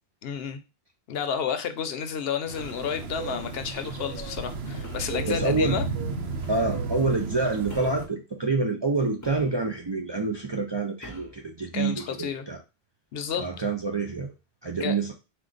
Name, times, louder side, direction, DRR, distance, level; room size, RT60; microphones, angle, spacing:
voice 1, 0.2-0.6 1.1-5.9 11.7-12.4 13.1-13.4 14.8-15.0, left 7 dB, 75° left, 9 dB, 0.8 m, -31 dB
sound 1, 2.5-8.1, right 4 dB, 85° right, 1.0 m, -33 dB
sound 2, 2.6-3.0 4.8-5.2 6.4-6.7 7.7-8.1 9.2-9.9 11.0-11.4, left 1 dB, 20° left, 0.6 m, -45 dB
voice 2, 5.3-5.8 6.5-12.6 13.4-14.3 14.6-15.1, right 3 dB, 35° right, 1 dB, 0.4 m, -27 dB
4.4 x 2.3 x 3.8 m, 0.27 s
omnidirectional pair, 1.0 m